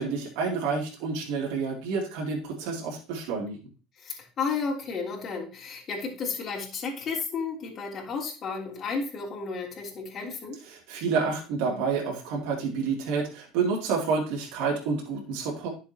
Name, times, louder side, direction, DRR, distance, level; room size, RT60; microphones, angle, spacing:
voice 1, 0.0-3.6 10.7-15.7, right 5 dB, 75° right, -2 dB, 3.0 m, -29 dB
voice 2, 4.0-10.6, left 5 dB, 40° left, -4 dB, 3.3 m, -33 dB
11.0 x 7.2 x 3.0 m, 0.34 s
supercardioid pair, 110°, 0 cm